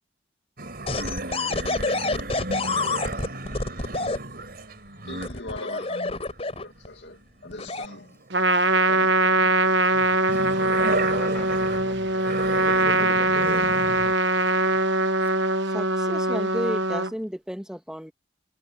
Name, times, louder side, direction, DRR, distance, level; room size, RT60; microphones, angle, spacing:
sound 1, 0.6-8.3 8.6-14.1 14.6-14.8, right 2 dB, 55° right, 5.1 m, -34 dB
sound 2, 0.9-4.2 5.2-6.9 7.5-7.9, left 3 dB, 35° left, 4.3 m, -28 dB
voice 1, 2.6-3.0 9.9-10.5 11.1-14.2 15.2-15.3, left 1 dB, 15° left, 4.4 m, -41 dB
voice 2, 5.1-6.2 6.6-8.2 8.9-9.3, left 2 dB, 70° left, 2.3 m, -40 dB
Trumpet, 8.3-17.1, right 2 dB, 75° right, 1.2 m, -22 dB
voice 3, 15.7-18.1, equal, 5° right, 2.1 m, -32 dB
head